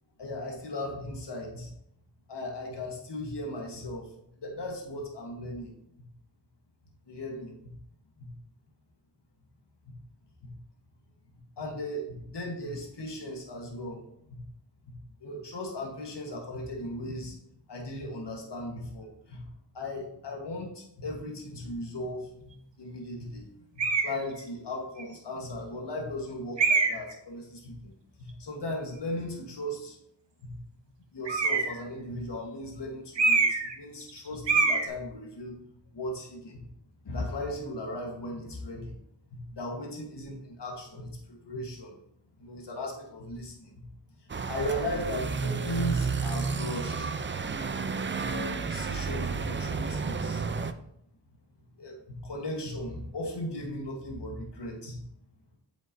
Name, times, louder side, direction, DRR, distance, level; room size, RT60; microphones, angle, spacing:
voice 1, 0.2-1.7 2.3-6.1 7.1-7.8 8.2-8.3 9.8-9.9 10.4-10.5 11.6-14.5 14.8-17.4 17.7-23.5 23.7-27.9 28.2-30.0 30.4-30.8 31.1-35.6 35.9-36.6 37.0-39.0 39.3-41.9 42.4-43.8 44.2-47.2 48.2-50.5 51.8-55.0, left 1 dB, 65° left, 1 dB, 1.3 m, -37 dB
sound 1, 23.8-24.2 25.0-25.1 26.6-27.1 31.3-31.8 33.2-33.8 34.0-34.2 34.5-34.9, right 4 dB, 75° right, 1.0 m, -24 dB
sound 2, 44.3-50.7, right 5 dB, 25° right, 0.4 m, -31 dB
7.7 x 5.3 x 2.6 m, 0.74 s
cardioid pair, 45°, 45 cm